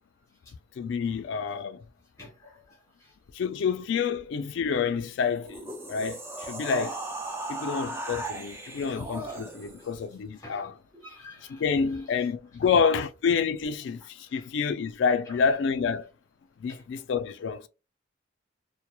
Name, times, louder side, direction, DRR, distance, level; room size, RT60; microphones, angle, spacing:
voice 1, 0.8-1.8 3.3-7.0 7.5-10.7 11.5-16.1 16.6-17.7, left 6 dB, 65° left, 0.3 m, -28 dB
voice 2, 2.2-3.1 8.3-8.4 8.7-9.9 10.3-11.6 12.6-12.7 14.3-14.5 15.3-15.4 16.7-16.8, left 1 dB, 15° left, 1.1 m, -50 dB
sound 1, 5.4-10.0, right 2 dB, 15° right, 0.4 m, -37 dB
2.9 x 2.0 x 2.2 m
head